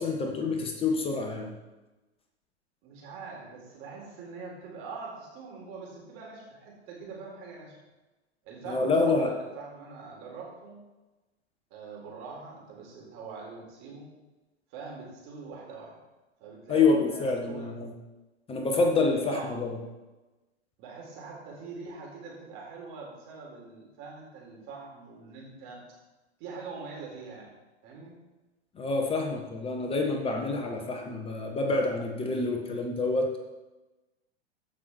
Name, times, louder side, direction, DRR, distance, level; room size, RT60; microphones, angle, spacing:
voice 1, 0.0-1.5 8.7-9.3 16.7-17.9 18.5-19.7 28.7-33.3, left 3 dB, 15° left, 2 dB, 1.3 m, -27 dB
voice 2, 2.8-7.7 8.4-10.8 11.7-14.1 14.7-16.0 16.4-17.7 19.0-19.7 20.8-25.8 26.4-27.5 27.8-28.2, right 4 dB, 40° right, -2 dB, 4.1 m, -43 dB
15.0 x 6.0 x 4.5 m, 1.1 s
figure-of-eight pair, 100°, 34 cm